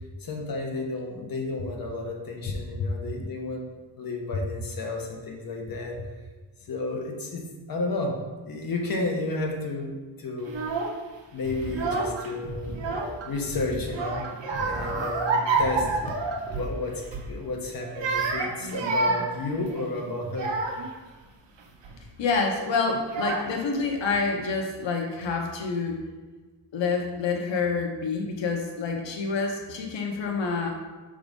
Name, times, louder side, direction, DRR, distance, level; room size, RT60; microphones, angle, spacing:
voice 1, 0.2-3.6 4.0-6.0 6.7-8.1 8.5-10.6 11.3-12.8 13.2-14.3 14.6-15.9 16.5-20.6, left 2 dB, 55° left, 1 dB, 1.2 m, -32 dB
Child speech kid speaking / Crying sobbing, 10.4-11.0 11.6-12.3 12.6-13.4 13.9-16.7 17.1-17.3 17.8-21.0 21.6-22.0 22.7-22.8 23.1-23.8, right 3 dB, 80° right, 1.0 m, -29 dB
sound 1, 11.4-16.6, equal, 30° right, 0.9 m, -38 dB
voice 2, 22.2-26.0 26.7-30.7, left 4 dB, 85° left, 1 dB, 0.9 m, -27 dB
6.1 x 3.9 x 5.2 m, 1.3 s
wide cardioid pair, 165°, 43 cm